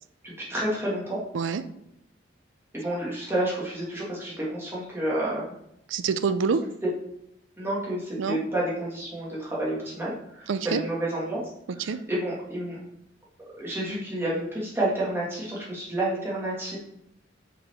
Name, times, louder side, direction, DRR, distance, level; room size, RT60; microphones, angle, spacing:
voice 1, 0.2-1.2 2.7-5.5 7.6-11.4 11.8-12.8 13.6-16.8, right 1 dB, 10° right, -6 dB, 1.7 m, -30 dB
voice 2, 5.9-6.6 8.2-8.4 10.5-10.8 11.8-12.0, right 5 dB, 85° right, 11 dB, 0.4 m, -26 dB
5.6 x 4.2 x 4.3 m, 0.78 s
head